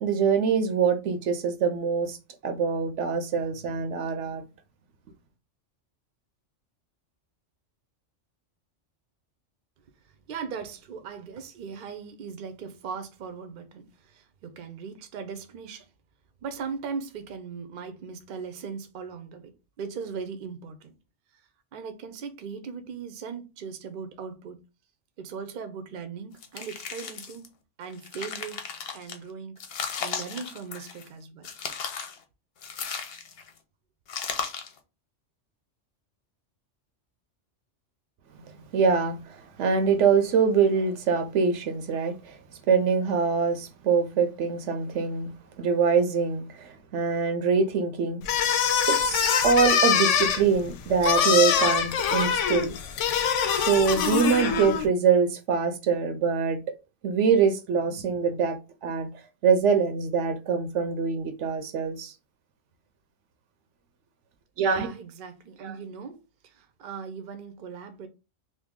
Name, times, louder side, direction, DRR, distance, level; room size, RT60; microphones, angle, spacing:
voice 1, 0.0-2.2 2.4-4.4 38.7-42.4 42.7-45.3 45.6-48.2 48.9-52.7 53.5-56.6 57.0-59.1 59.4-62.1 64.6-64.9, right 5 dB, 80° right, 1.0 m, -24 dB
voice 2, 10.3-15.9 16.4-20.9 21.7-24.6 25.2-27.5 27.8-28.6 28.9-29.6 30.0-31.5 64.6-68.1, right 6 dB, 55° right, 0.7 m, -39 dB
sound 1, 26.4-27.5 27.9-29.2 29.6-31.1 31.4-32.2 32.6-33.5 34.1-34.8, left 6 dB, 60° left, 0.8 m, -35 dB
sound 2, 48.2-54.9, left 7 dB, 85° left, 0.9 m, -24 dB
2.8 x 2.6 x 3.6 m
omnidirectional pair, 1.2 m